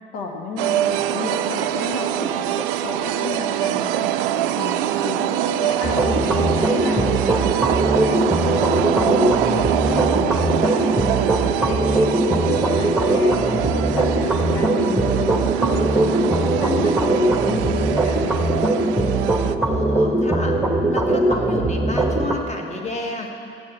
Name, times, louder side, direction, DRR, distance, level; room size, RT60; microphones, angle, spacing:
voice 1, 0.1-5.3 5.6-7.5 8.0-11.0 11.6-18.3, left 4 dB, 60° left, 1 dB, 1.0 m, -31 dB
sound 1, 0.6-19.6, right 11 dB, 65° right, 0.5 m, -24 dB
sound 2, 5.8-22.3, right 1 dB, 5° right, 1.2 m, -20 dB
voice 2, 8.5-9.1 19.6-20.6 20.9-23.3, left 1 dB, 20° left, 2 dB, 1.6 m, -31 dB
15.5 x 9.5 x 4.5 m, 2.7 s
figure-of-eight pair, 55°, 30 cm